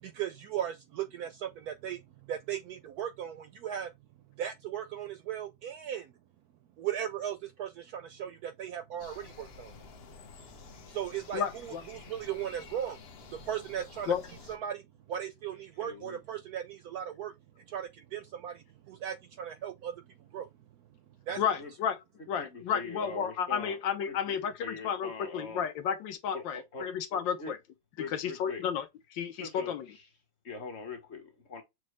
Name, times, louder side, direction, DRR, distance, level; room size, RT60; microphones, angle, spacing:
voice 1, 0.0-3.9 4.4-6.1 6.8-9.8 10.9-13.0 13.3-14.1 14.5-17.3 17.7-20.5 21.3-21.4, right 10 dB, 75° right, 0.9 m, -37 dB
sound 1, 9.0-14.6, left 5 dB, 60° left, 0.6 m, -51 dB
voice 2, 11.3-11.8 14.1-14.2 21.4-22.0 22.3-27.6 28.0-29.9, left 8 dB, 80° left, 1.4 m, -32 dB
voice 3, 15.8-16.2 21.3-21.7 22.4-23.8 24.1-25.7 26.3-27.5 28.0-28.6 29.3-29.7 30.4-31.6, left 3 dB, 40° left, 1.2 m, -42 dB
6.4 x 2.2 x 3.1 m
omnidirectional pair, 2.1 m